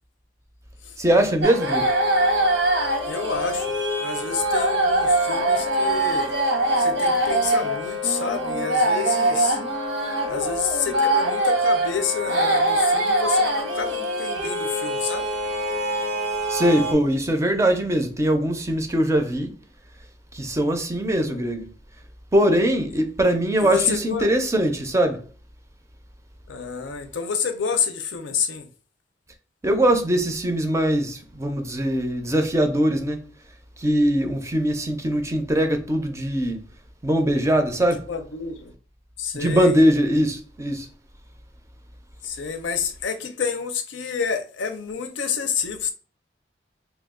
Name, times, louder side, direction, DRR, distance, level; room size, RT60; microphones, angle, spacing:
voice 1, 1.0-1.9 16.5-19.6 20.3-21.7 22.3-25.2 29.6-33.3 33.8-36.6 37.0-38.0 39.3-40.9, right 1 dB, 15° right, 0.4 m, -21 dB
sound 1, 1.4-16.9, right 1 dB, 85° right, 1.0 m, -23 dB
voice 2, 3.0-6.3 6.8-9.6 10.3-15.3 21.2-21.5 23.6-24.3 26.5-28.7 38.1-38.7 39.2-39.8 42.2-45.9, left 6 dB, 90° left, 0.5 m, -29 dB
2.9 x 2.3 x 3.5 m
head